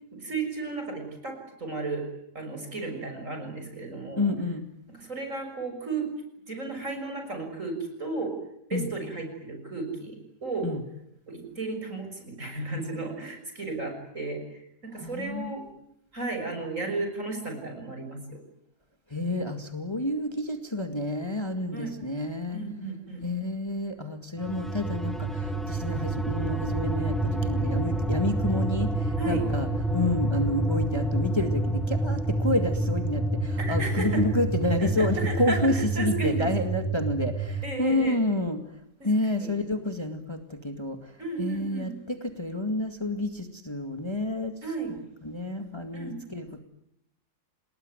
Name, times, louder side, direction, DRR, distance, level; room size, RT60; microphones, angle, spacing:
voice 1, 0.1-2.1 2.3-4.2 4.9-6.1 6.5-8.3 8.7-10.7 11.3-15.6 16.1-18.4 21.7-21.9 22.5-23.3 29.2-29.4 33.6-34.3 34.8-36.5 37.6-38.2 39.0-39.5 41.2-41.9 44.6-44.9 45.9-46.2, right 3 dB, 50° right, 4 dB, 6.8 m, -34 dB
voice 2, 4.2-4.6 8.7-8.9 10.6-10.8 15.0-15.5 19.1-22.6 23.2-29.7 29.9-38.6 39.0-44.6 45.2-46.6, left 1 dB, 15° left, 6 dB, 2.1 m, -29 dB
sound 1, 24.4-37.7, right 2 dB, ahead, 1.7 m, -28 dB
28.5 x 20.5 x 9.2 m, 0.80 s
omnidirectional pair, 1.7 m